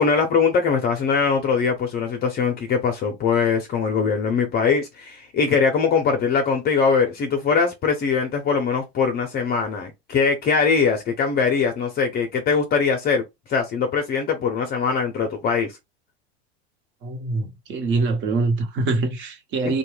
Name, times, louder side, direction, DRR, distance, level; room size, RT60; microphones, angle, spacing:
voice 1, 0.0-13.2 13.5-15.7 19.6-19.7, left 5 dB, 30° left, 0.6 m, -21 dB
voice 2, 17.0-19.8, right 3 dB, 40° right, 1.0 m, -24 dB
2.7 x 2.3 x 3.1 m
supercardioid pair, 115°, 31 cm